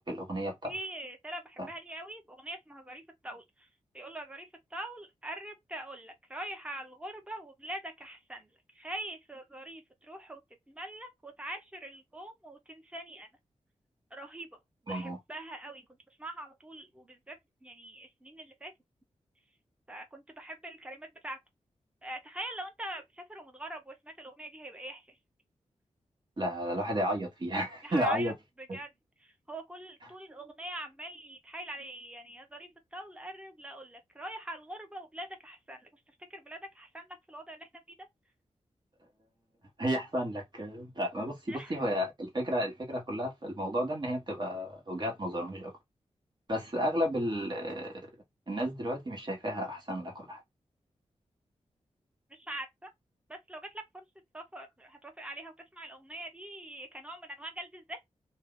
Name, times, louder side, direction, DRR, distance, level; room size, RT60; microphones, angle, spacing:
voice 1, 0.0-0.7 1.6-1.7 14.9-15.2 26.4-28.3 28.7-28.8 39.8-45.7 46.5-48.1 48.5-50.4, equal, 40° right, 1.3 m, -32 dB
voice 2, 0.6-3.7 3.9-10.4 10.7-13.3 14.1-14.6 14.8-18.7 19.9-21.4 22.0-25.2 27.8-28.3 28.6-28.9 29.2-37.7 38.0-38.1 41.5-41.8 52.3-52.9 53.3-54.0 54.3-58.0, right 1 dB, 10° right, 0.8 m, -43 dB
2.7 x 2.1 x 3.6 m
cardioid pair, 70°, 12 cm